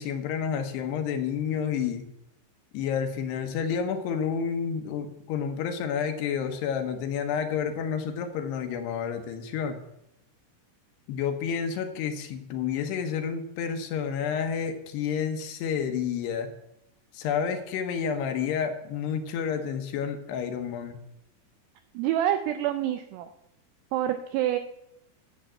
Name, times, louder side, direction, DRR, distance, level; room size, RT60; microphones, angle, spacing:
voice 1, 0.0-2.0 2.7-9.8 11.1-16.5 17.1-21.0, left 7 dB, 75° left, 7 dB, 2.8 m, -30 dB
voice 2, 21.9-23.3 23.9-24.6, right 12 dB, 80° right, 8 dB, 2.6 m, -27 dB
11.5 x 7.1 x 7.6 m, 0.84 s
omnidirectional pair, 5.2 m